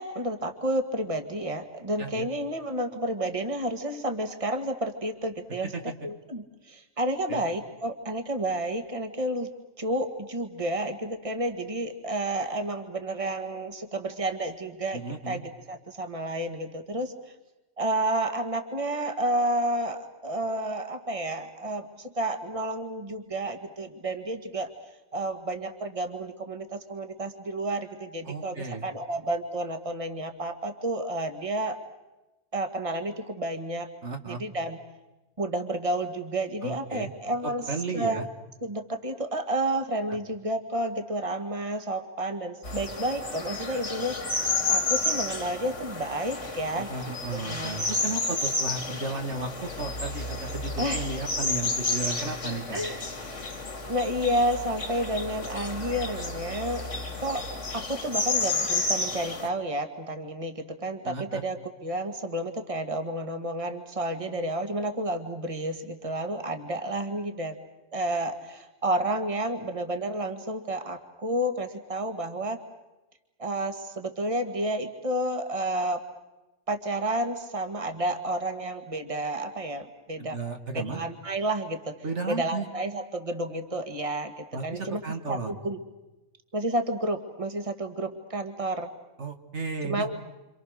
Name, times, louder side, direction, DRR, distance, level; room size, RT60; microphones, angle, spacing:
voice 1, 0.0-5.7 6.0-9.5 9.8-17.1 17.8-24.7 25.1-31.8 32.5-33.9 34.3-34.8 35.4-37.7 37.9-38.2 38.6-44.2 44.7-46.9 47.5-47.8 50.8-51.1 52.7-53.1 53.9-56.8 57.2-57.4 57.7-61.6 61.8-67.6 67.9-72.6 73.4-76.0 76.7-80.4 80.7-82.0 82.3-85.0 85.3-85.8 86.5-88.9 89.8-90.2, right 1 dB, 25° right, 7 dB, 2.0 m, -30 dB
voice 2, 14.9-15.4 28.3-28.8 34.0-34.4 36.6-37.1 37.4-38.2 46.8-52.8 61.0-61.4 80.2-81.0 82.0-82.7 84.5-85.5 89.2-90.1, right 3 dB, 65° right, 5 dB, 2.4 m, -34 dB
sound 1, 42.6-59.5, left 3 dB, 75° left, 2.9 m, -31 dB
29.0 x 27.5 x 6.6 m, 1.0 s
omnidirectional pair, 1.3 m